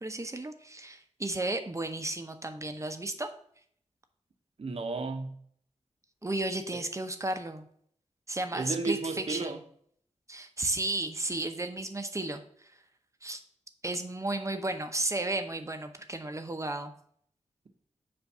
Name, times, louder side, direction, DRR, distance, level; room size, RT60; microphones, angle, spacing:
voice 1, 0.0-3.3 6.2-7.7 8.3-9.5 10.3-12.4 13.2-13.4 13.8-16.9, right 2 dB, 25° right, 0.7 m, -33 dB
voice 2, 4.6-5.4 6.7-6.8 8.5-9.6, right 3 dB, 55° right, 0.8 m, -33 dB
7.0 x 2.6 x 5.4 m
cardioid pair, 50°, 12 cm